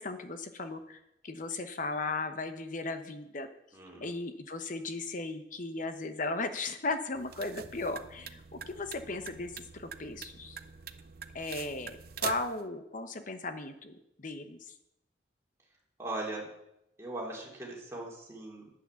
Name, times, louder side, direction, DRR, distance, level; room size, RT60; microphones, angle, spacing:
voice 1, 0.0-3.5 4.0-10.6 11.3-14.7, left 3 dB, 50° left, 8 dB, 1.0 m, -37 dB
voice 2, 3.7-4.1 16.0-16.5 17.0-18.7, right 2 dB, 15° right, -3 dB, 3.1 m, -39 dB
sound 1, 7.1-12.6, right 7 dB, 60° right, 0.6 m, -43 dB
9.9 x 8.7 x 7.1 m, 0.83 s
head